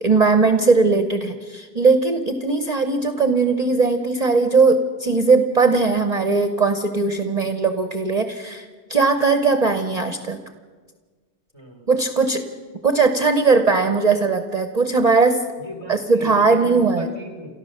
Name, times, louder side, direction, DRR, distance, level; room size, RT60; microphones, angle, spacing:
voice 1, 0.0-10.4 11.9-12.4 12.8-15.4 15.9-17.1, right 4 dB, 40° right, 7 dB, 1.0 m, -19 dB
voice 2, 11.5-11.9 15.6-17.5, right 1 dB, 25° left, 3 dB, 3.8 m, -38 dB
29.5 x 13.5 x 6.6 m, 1.5 s
omnidirectional pair, 1.1 m